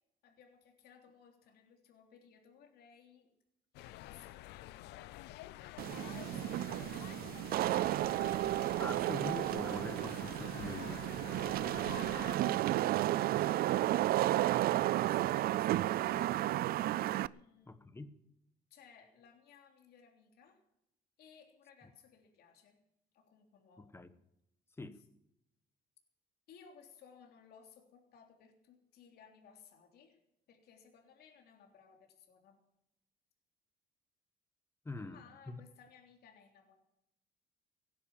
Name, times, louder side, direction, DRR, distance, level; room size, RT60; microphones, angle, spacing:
voice 1, 0.2-3.3 3.7-5.0 5.9-7.5 12.4-14.3 15.0-16.4 17.3-18.0 18.7-20.6 21.2-22.8 23.1-24.0 26.5-30.2 30.5-32.6 35.0-36.7, left 6 dB, 70° left, 3.3 m, -60 dB
sound 1, 3.7-12.4, left 16 dB, 85° left, 0.6 m, -49 dB
Wind / Rain, 5.8-17.3, right 15 dB, 65° right, 0.5 m, -32 dB
voice 2, 8.8-11.1 17.7-18.2 23.8-24.1 24.8-25.0 34.8-35.2 35.5-35.6, left 2 dB, 15° left, 1.3 m, -44 dB
17.0 x 10.5 x 7.3 m
cardioid pair, 110°, 17 cm